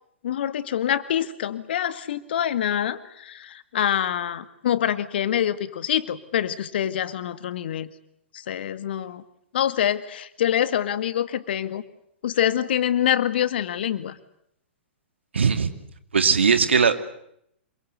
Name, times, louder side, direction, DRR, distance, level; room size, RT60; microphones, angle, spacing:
voice 1, 0.2-7.9 8.3-9.2 9.5-11.8 12.2-14.2, left 10 dB, 60° left, 13 dB, 1.9 m, -25 dB
voice 2, 15.3-15.7 16.1-17.0, right 6 dB, 70° right, 9 dB, 2.6 m, -19 dB
27.0 x 23.5 x 8.1 m, 0.74 s
figure-of-eight pair, 110°, 6 cm